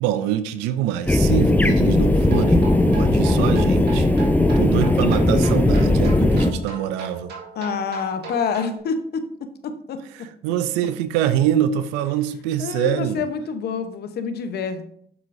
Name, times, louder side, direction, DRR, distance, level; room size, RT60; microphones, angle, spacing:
voice 1, 0.0-4.1 4.6-7.3 10.2-13.2, right 10 dB, 90° right, 12 dB, 0.4 m, -24 dB
sound 1, 1.1-6.5, left 1 dB, 10° left, 0.8 m, -17 dB
sound 2, 2.2-8.8, right 4 dB, 70° right, 2.0 m, -37 dB
voice 2, 7.6-9.2 9.6-10.0 12.6-14.8, left 6 dB, 65° left, 9 dB, 0.9 m, -27 dB
7.1 x 6.4 x 2.6 m, 0.64 s
supercardioid pair, 55°, 18 cm